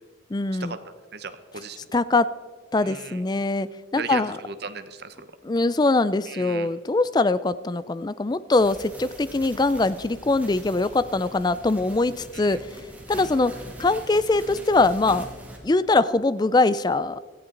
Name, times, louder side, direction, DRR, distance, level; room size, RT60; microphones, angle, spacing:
voice 1, 0.3-0.8 1.9-2.3 2.7-3.7 3.9-4.4 5.4-12.6 13.1-15.3 15.6-17.2, left 3 dB, 20° left, 16 dB, 0.4 m, -22 dB
voice 2, 1.1-1.8 2.8-3.2 4.0-5.1 6.3-6.7 12.4-12.6, right 5 dB, 55° right, 10 dB, 1.0 m, -36 dB
sound 1, 8.6-15.6, equal, 10° right, 2.1 m, -42 dB
17.5 x 14.0 x 3.9 m, 1.5 s
head